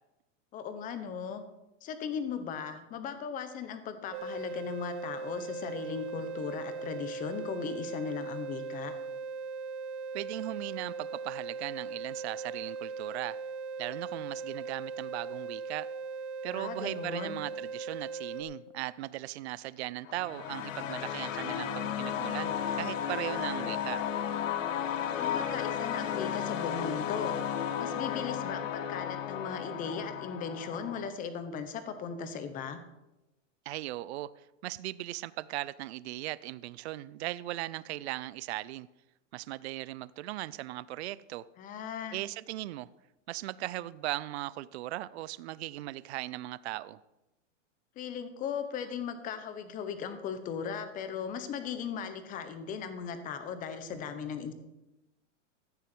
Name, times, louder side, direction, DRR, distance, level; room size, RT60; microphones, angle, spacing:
voice 1, 0.5-1.4 1.8-8.9 16.5-17.4 25.2-27.3 27.8-32.8 41.6-42.2 48.0-54.5, left 6 dB, 20° left, 1.0 m, -37 dB
sound 1, 4.1-18.4, right 4 dB, 35° right, 1.1 m, -39 dB
voice 2, 10.1-13.4 13.8-15.9 16.4-24.0 33.7-38.9 39.3-41.5 42.1-42.9 43.3-47.0, right 16 dB, 60° right, 0.5 m, -38 dB
sound 2, 20.1-31.1, left 9 dB, 85° left, 1.3 m, -34 dB
14.0 x 9.3 x 4.6 m
supercardioid pair, 155°, 38 cm